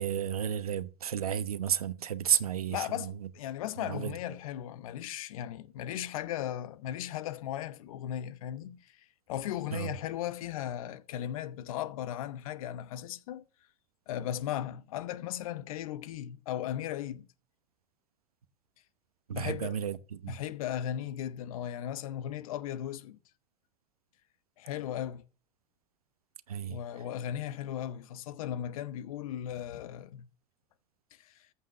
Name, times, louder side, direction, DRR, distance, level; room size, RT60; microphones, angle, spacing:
voice 1, 0.0-3.1 3.8-4.1 9.7-9.9 19.3-20.3 26.5-26.8, right 9 dB, 85° right, 1.0 m, -32 dB
voice 2, 2.7-13.4 14.1-17.3 19.3-19.8 20.3-23.2 24.6-25.2 26.7-30.3 31.1-31.4, left 11 dB, 70° left, 1.0 m, -37 dB
14.0 x 5.6 x 7.5 m
hypercardioid pair, 75°, 18 cm